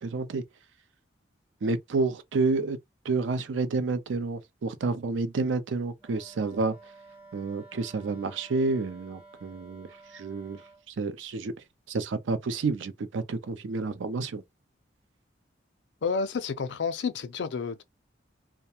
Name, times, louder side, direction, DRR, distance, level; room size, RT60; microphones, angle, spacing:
voice 1, 0.0-0.4 1.6-2.8 3.0-6.8 7.3-10.6 10.9-11.5 11.9-14.4, right 3 dB, 85° right, 0.4 m, -29 dB
Wind instrument woodwind instrument, 6.0-10.9, right 3 dB, 30° right, 0.9 m, -52 dB
voice 2, 16.0-17.8, left 5 dB, 70° left, 0.4 m, -30 dB
2.3 x 2.1 x 2.8 m
head